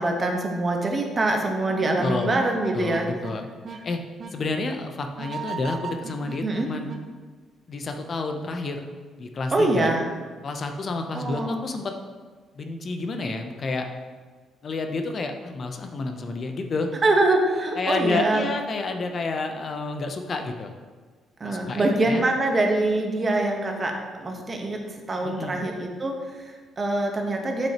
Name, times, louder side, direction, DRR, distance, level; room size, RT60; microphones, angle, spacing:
voice 1, 0.0-3.1 6.4-6.7 9.5-10.1 11.1-11.6 17.0-18.4 21.4-27.7, right 2 dB, 30° right, 2 dB, 1.0 m, -24 dB
sound 1, 1.1-1.3 1.7-3.3 3.6-3.8 4.2-4.3 5.2-7.0, right 5 dB, 45° right, 0.6 m, -36 dB
voice 2, 2.0-2.3 2.7-4.0 4.3-6.9 7.7-8.9 9.2-9.9 10.4-11.9 12.5-13.9 14.6-16.9 17.8-20.7 21.4-22.2 25.2-25.7, left 3 dB, 45° left, 5 dB, 0.6 m, -30 dB
7.2 x 6.1 x 2.9 m, 1.5 s
cardioid pair, 100°, 0 cm